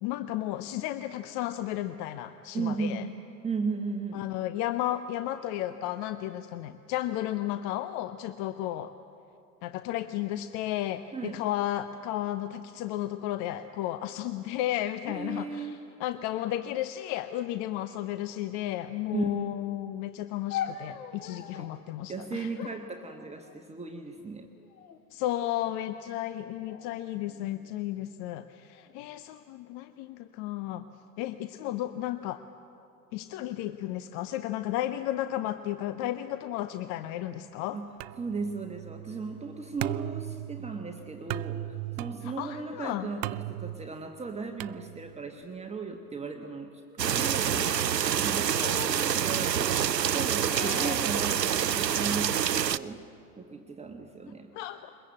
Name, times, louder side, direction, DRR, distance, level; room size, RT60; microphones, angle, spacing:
voice 1, 0.0-3.0 4.1-8.9 9.6-22.5 25.1-30.9 31.2-32.4 33.1-37.8 42.2-43.1 47.5-47.8 48.6-49.0 50.5-51.0 54.5-54.9, left 13 dB, 35° left, 11 dB, 0.8 m, -33 dB
voice 2, 2.5-3.2 3.4-4.2 11.1-11.4 15.1-15.8 19.1-19.5 21.5-21.7 22.1-24.5 37.7-37.9 38.2-47.6 47.9-49.7 50.1-53.0 53.4-54.5, right 4 dB, 15° right, 3 dB, 1.4 m, -36 dB
sound 1, 20.5-21.8 22.6-23.8 24.5-25.0 25.4-26.0 26.7-27.9 28.7-29.2, left 10 dB, 60° left, 1.5 m, -41 dB
sound 2, 38.0-45.4, right 16 dB, 40° right, 0.6 m, -38 dB
sound 3, 47.0-52.8, right 9 dB, 85° right, 0.6 m, -27 dB
22.5 x 21.5 x 8.6 m, 2.6 s
figure-of-eight pair, 85°, 48 cm